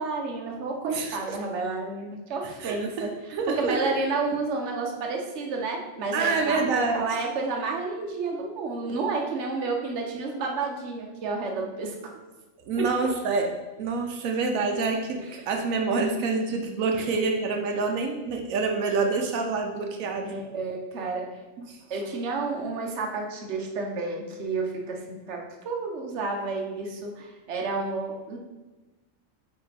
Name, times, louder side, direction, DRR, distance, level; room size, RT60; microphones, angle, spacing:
voice 1, 0.0-3.1 3.5-11.9 12.8-12.9 15.2-15.3 16.9-17.2 20.2-21.3 21.9-28.4, right 3 dB, 60° right, 1 dB, 1.1 m, -31 dB
voice 2, 0.8-1.4 2.6-3.9 6.1-7.1 12.7-13.5 13.8-20.3 21.6-21.8, right 4 dB, 90° right, 3 dB, 1.1 m, -27 dB
8.7 x 3.3 x 3.3 m, 1.2 s
omnidirectional pair, 1.4 m